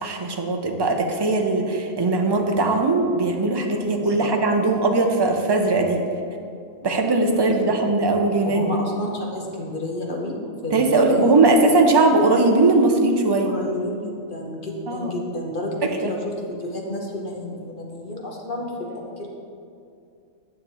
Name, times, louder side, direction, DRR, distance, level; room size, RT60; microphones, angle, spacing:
voice 1, 0.0-6.0 6.8-8.7 10.7-13.5 14.9-15.1 15.8-16.1, right 3 dB, 30° right, 3 dB, 0.4 m, -19 dB
voice 2, 8.4-11.3 13.4-19.3, left 2 dB, 40° left, -1 dB, 1.2 m, -31 dB
9.5 x 6.9 x 4.2 m, 2.5 s
omnidirectional pair, 1.4 m